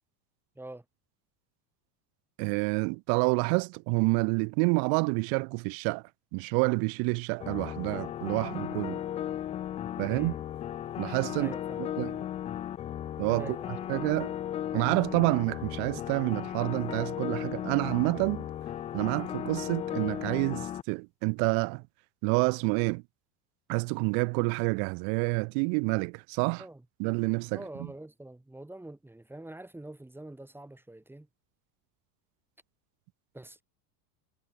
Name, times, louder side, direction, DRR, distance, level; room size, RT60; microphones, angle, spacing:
voice 1, 2.4-6.0 6.3-9.0 10.0-10.3 11.0-11.5 12.0-12.1 13.2-13.6 13.9-14.3 14.7-18.5 18.9-21.8 22.2-23.0 23.7-26.6 27.0-27.6, right 40 dB or more, 50° right, 0.7 m, -28 dB
sound 1, 7.4-20.8, left 11 dB, 15° left, 0.3 m, -36 dB
voice 2, 10.0-10.4 11.4-11.9 13.4-14.0 26.6-26.8 27.5-31.3 33.3-33.6, right 1 dB, 5° right, 4.4 m, -45 dB
cardioid pair, 160°, 49 cm